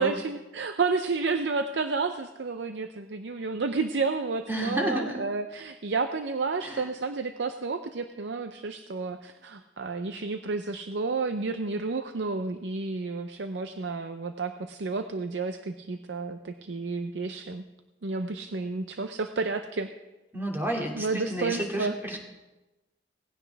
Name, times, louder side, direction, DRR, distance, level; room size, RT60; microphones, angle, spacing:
voice 1, 0.0-17.7 18.0-19.9 20.9-22.2, right 4 dB, 75° right, 8 dB, 0.6 m, -31 dB
voice 2, 4.5-5.2 6.6-6.9 20.3-22.2, right 1 dB, 15° right, 0 dB, 2.4 m, -31 dB
18.0 x 16.0 x 3.5 m, 1.1 s
head